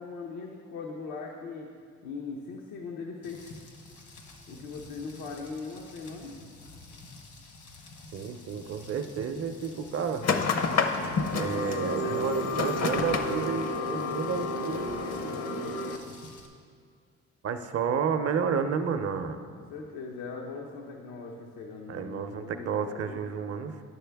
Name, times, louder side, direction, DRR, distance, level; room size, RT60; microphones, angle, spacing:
voice 1, 0.0-1.7 2.0-3.4 4.5-6.4 11.9-13.4 19.5-23.2, left 4 dB, 90° left, -1 dB, 0.8 m, -40 dB
Rain, 3.2-16.5, left 3 dB, 75° left, 1.3 m, -49 dB
voice 2, 8.1-10.3 11.3-15.4 17.4-19.4 21.9-23.8, right 6 dB, 50° right, 8 dB, 0.6 m, -31 dB
sound 1, 10.2-16.0, left 3 dB, 55° left, 0.7 m, -29 dB
10.5 x 6.5 x 3.4 m, 2.1 s
cardioid pair, 90°, 30 cm